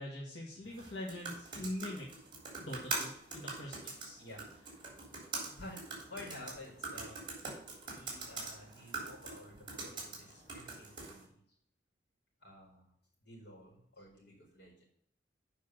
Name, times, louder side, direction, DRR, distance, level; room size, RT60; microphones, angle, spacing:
voice 1, 0.0-2.1 2.6-4.2, left 1 dB, 90° left, -4 dB, 2.0 m, -43 dB
sound 1, 0.7-11.2, right 3 dB, 30° right, 3.5 m, -43 dB
voice 2, 5.5-7.4 7.9-11.4 12.4-12.9 13.2-14.8, left 1 dB, 65° left, -1 dB, 4.4 m, -52 dB
8.7 x 5.5 x 6.4 m, 0.67 s
head